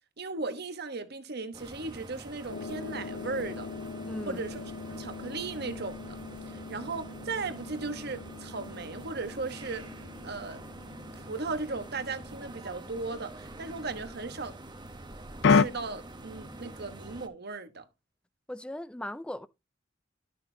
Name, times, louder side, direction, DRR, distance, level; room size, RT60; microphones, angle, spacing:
voice 1, 0.2-3.7 4.3-4.6 4.9-6.2 6.5-9.8 10.2-10.6 11.1-14.6 15.5-17.8, right 3 dB, 55° right, 1.2 m, -37 dB
sound 1, 1.5-17.3, right 2 dB, 25° right, 0.9 m, -46 dB
sound 2, 2.5-14.0 15.4-15.6, left 5 dB, 65° left, 0.4 m, -34 dB
voice 2, 4.0-4.5 18.5-19.5, left 1 dB, 5° left, 0.5 m, -38 dB
12.0 x 6.5 x 2.7 m
head